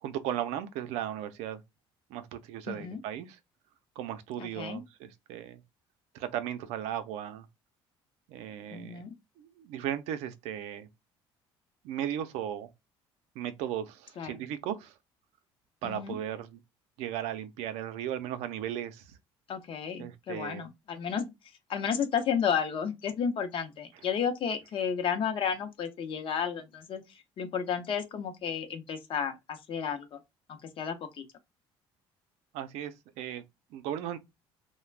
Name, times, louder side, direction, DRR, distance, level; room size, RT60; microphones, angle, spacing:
voice 1, 0.0-1.6 2.1-3.3 4.0-5.6 6.1-7.5 8.3-9.0 9.4-10.9 11.8-12.7 13.4-14.9 15.8-16.6 17.0-19.1 20.0-20.6 32.5-33.4 33.7-34.2, right 10 dB, 80° right, 0.5 m, -36 dB
voice 2, 2.7-3.0 4.4-4.8 8.7-9.2 14.2-14.4 15.8-16.2 19.5-30.2 30.5-31.2, left 7 dB, 50° left, 0.6 m, -32 dB
2.4 x 2.1 x 3.2 m
supercardioid pair, 90°, 11 cm